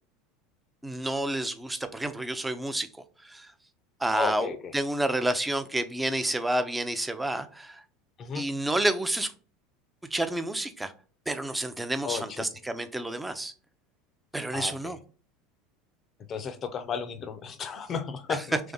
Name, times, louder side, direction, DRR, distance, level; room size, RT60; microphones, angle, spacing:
voice 1, 0.8-2.9 3.2-3.5 4.0-7.8 8.3-9.3 10.1-10.9 11.3-13.5 14.3-15.0 18.3-18.4, right 1 dB, 10° right, 10 dB, 0.6 m, -29 dB
voice 2, 4.1-4.7 8.2-8.4 12.0-12.4 14.5-14.9 16.3-18.6, left 6 dB, 35° left, 11 dB, 0.6 m, -33 dB
3.4 x 3.3 x 3.8 m, 0.39 s
figure-of-eight pair, 75°, 0 cm